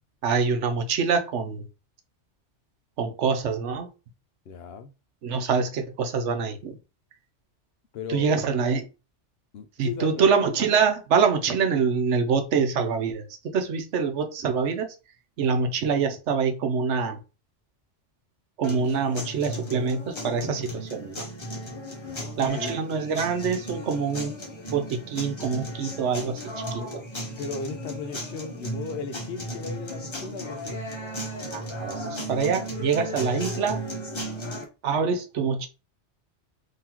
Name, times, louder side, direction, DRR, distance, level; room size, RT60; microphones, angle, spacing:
voice 1, 0.2-1.7 3.0-3.9 5.2-6.8 8.1-8.9 9.8-14.9 15.4-17.2 18.6-21.3 22.4-24.4 24.7-26.8 31.5-33.8 34.8-35.7, right 5 dB, 85° right, 1.0 m, -25 dB
voice 2, 4.5-4.9 7.9-8.3 9.5-10.3 22.0-22.3 22.6-22.7 26.8-26.9 27.3-30.8, left 5 dB, 65° left, 0.8 m, -36 dB
sound 1, 18.6-34.6, equal, 25° left, 0.9 m, -35 dB
3.8 x 2.9 x 2.9 m
omnidirectional pair, 1.2 m